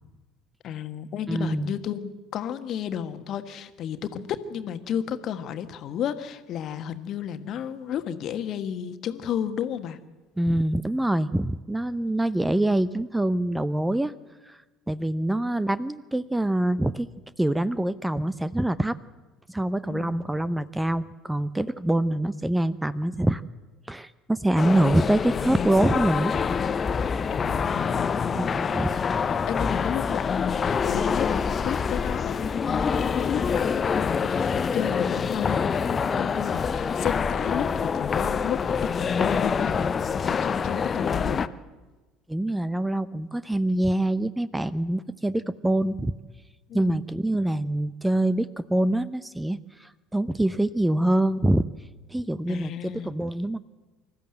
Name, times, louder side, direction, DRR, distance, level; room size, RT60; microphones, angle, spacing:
voice 1, 0.6-10.0 19.9-20.2 22.3-22.4 27.3-29.1 29.5-38.7 39.0-41.4 46.7-47.0 52.5-53.1, left 9 dB, 50° left, 9 dB, 1.4 m, -32 dB
voice 2, 1.3-1.7 10.4-14.1 14.5-14.6 14.9-17.1 17.4-19.0 19.5-23.4 23.9-26.3 28.3-28.9 42.3-46.1 46.7-51.6 52.1-53.6, right 1 dB, 10° right, 17 dB, 0.7 m, -25 dB
sound 1, 24.6-41.5, left 6 dB, 30° left, 0.8 m, -26 dB
25.5 x 14.0 x 7.7 m, 1.2 s
figure-of-eight pair, 60°, 0 cm